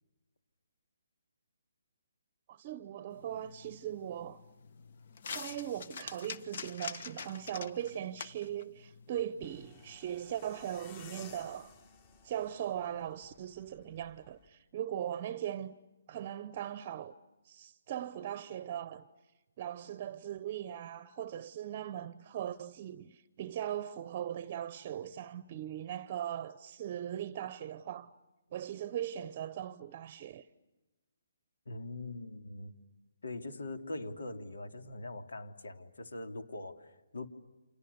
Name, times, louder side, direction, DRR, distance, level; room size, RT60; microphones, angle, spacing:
voice 1, 2.5-4.4 5.3-11.7 12.2-15.7 16.1-17.1 17.4-19.1 19.6-28.1 28.5-30.5, right 10 dB, 30° right, 0.8 m, -39 dB
sound 1, 3.1-10.0, left 5 dB, 50° left, 1.4 m, -46 dB
sound 2, 9.4-14.5, left 5 dB, 30° left, 2.5 m, -56 dB
voice 2, 31.7-32.7 33.2-37.3, left 2 dB, 80° left, 3.0 m, -42 dB
29.5 x 27.5 x 7.0 m
hypercardioid pair, 160°, 0 cm